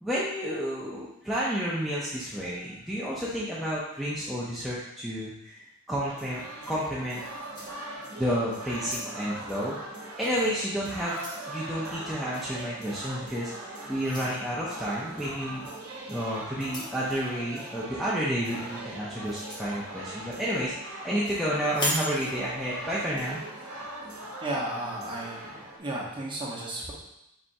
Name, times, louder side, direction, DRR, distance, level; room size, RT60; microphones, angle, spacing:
voice 1, 0.0-5.6 5.9-7.2 8.2-9.8 10.2-11.1 11.5-15.6 16.1-23.4, equal, ahead, -9 dB, 0.5 m, -31 dB
sound 1, 6.1-25.8, right 1 dB, 85° right, 0.8 m, -41 dB
sound 2, 7.1-8.3 8.7-9.4 10.2-10.4 10.8-11.5 12.9-13.1 14.0-14.3 15.6-15.8 16.6-17.0 19.2-19.7 21.7-22.1, equal, 20° left, 0.9 m, -36 dB
voice 2, 24.4-25.5 25.8-26.9, right 1 dB, 25° right, -4 dB, 0.9 m, -33 dB
4.1 x 3.4 x 2.6 m, 0.85 s
head